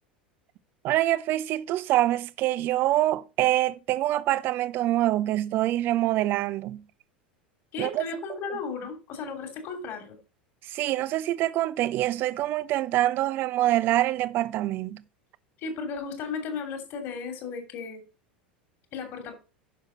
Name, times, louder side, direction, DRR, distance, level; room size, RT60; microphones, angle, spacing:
voice 1, 0.8-6.8 7.8-8.0 10.6-15.0, right 15 dB, 40° right, 0.5 m, -25 dB
voice 2, 7.7-10.2 15.6-18.0 18.9-19.3, left 5 dB, 45° left, 2.7 m, -35 dB
10.0 x 6.6 x 3.9 m
figure-of-eight pair, 80°, 5 cm